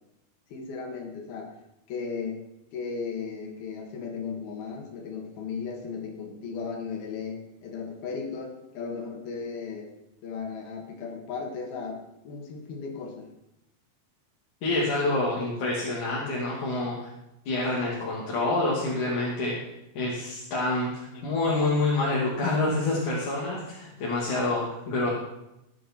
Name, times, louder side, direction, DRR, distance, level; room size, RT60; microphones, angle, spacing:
voice 1, 0.5-1.6 1.9-2.4 2.7-9.9 10.2-13.3 21.1-21.2, left 5 dB, 80° left, 2 dB, 3.9 m, -36 dB
voice 2, 14.6-17.1 17.5-19.5 19.9-25.1, left 2 dB, 55° left, -6 dB, 4.0 m, -27 dB
18.0 x 10.0 x 4.6 m, 0.87 s
omnidirectional pair, 4.3 m